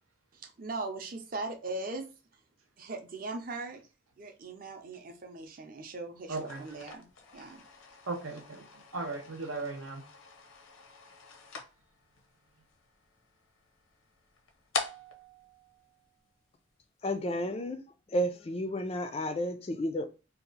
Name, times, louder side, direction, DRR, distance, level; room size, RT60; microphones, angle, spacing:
voice 1, 0.3-2.1 2.8-3.8 4.2-7.7, right 3 dB, 45° right, 0.6 m, -39 dB
sound 1, 6.2-16.6, left 4 dB, 85° left, 0.6 m, -44 dB
voice 2, 6.3-6.6 8.1-10.0, right 3 dB, 85° right, 0.9 m, -37 dB
voice 3, 17.0-17.8 18.1-20.1, equal, 30° left, 0.3 m, -32 dB
2.8 x 2.4 x 3.9 m
head